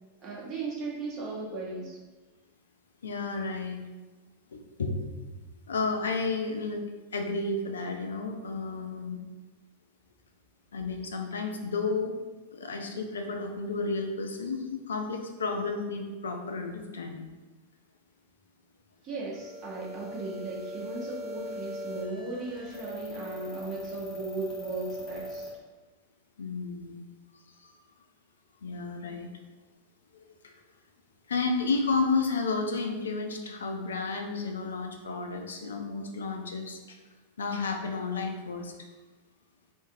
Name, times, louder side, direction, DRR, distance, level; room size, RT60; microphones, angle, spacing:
voice 1, 0.2-2.0 19.0-25.5, right 3 dB, 30° right, -5 dB, 0.7 m, -37 dB
voice 2, 3.0-3.8 4.5-5.3 5.7-6.8 7.1-9.2 10.7-12.1 12.5-17.2 26.4-27.0 27.6-27.7 28.6-29.3 30.1-30.2 31.3-37.0 37.4-38.7, left 3 dB, 70° left, 4 dB, 0.4 m, -32 dB
sound 1, 19.3-25.5, equal, 30° left, 1.2 m, -40 dB
3.7 x 2.6 x 2.5 m, 1.2 s
figure-of-eight pair, 90°, 0 cm